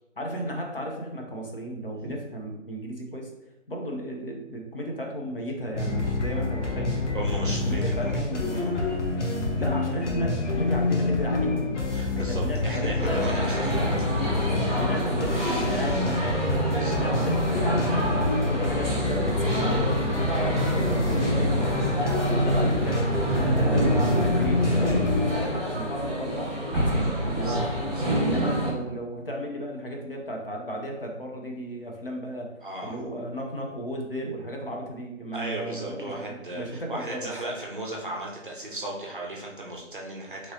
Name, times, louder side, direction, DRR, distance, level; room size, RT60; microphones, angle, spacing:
voice 1, 0.2-3.3 3.7-7.0 7.7-8.6 9.5-11.7 12.1-13.5 14.6-18.1 18.5-21.6 22.2-23.0 23.4-25.2 25.6-27.7 28.2-32.5 32.8-37.3, equal, 50° left, 0 dB, 0.6 m, -34 dB
sound 1, 5.7-25.5, left 3 dB, 70° left, 0.9 m, -27 dB
voice 2, 7.1-8.7 11.9-14.3 16.7-17.0 21.1-21.4 25.6-25.9 27.4-28.2 32.6-33.0 35.3-40.5, right 1 dB, 45° right, -2 dB, 0.6 m, -37 dB
sound 2, 11.0-14.6 15.2-18.5 19.5-24.7 25.0-25.3, right 3 dB, 25° right, 1.0 m, -34 dB
sound 3, 13.0-28.7, right 1 dB, ahead, 0.7 m, -28 dB
3.0 x 2.9 x 2.7 m, 0.93 s
hypercardioid pair, 180°, 38 cm